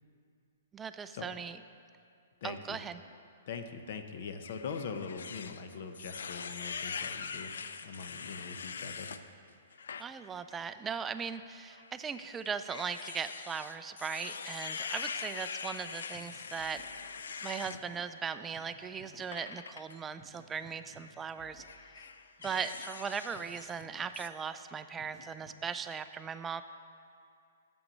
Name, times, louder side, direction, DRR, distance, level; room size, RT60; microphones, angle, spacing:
voice 1, 0.7-1.6 2.4-3.0 10.0-16.8 17.4-21.6 22.0-22.1 22.4-26.6, right 6 dB, 15° right, 11 dB, 0.3 m, -38 dB
voice 2, 2.4-2.8 3.5-7.5 7.8-9.1, left 5 dB, 55° left, 7 dB, 0.8 m, -42 dB
sound 1, 4.4-9.2 9.7-10.1 10.5-10.6 11.7-17.8 19.3-19.9 20.9-21.1 21.6-23.9 24.1-24.3, left 6 dB, 80° left, 0.4 m, -43 dB
sound 2, 16.1-16.3 16.6-17.3 17.6-18.1 18.5-18.7 19.0-19.3 20.2-21.1 21.4-22.1 22.4-22.9 23.3-23.5 23.8-24.1 25.0-25.6, equal, 35° left, 2.4 m, -57 dB
8.8 x 7.1 x 5.3 m, 2.4 s
hypercardioid pair, 140°, 0 cm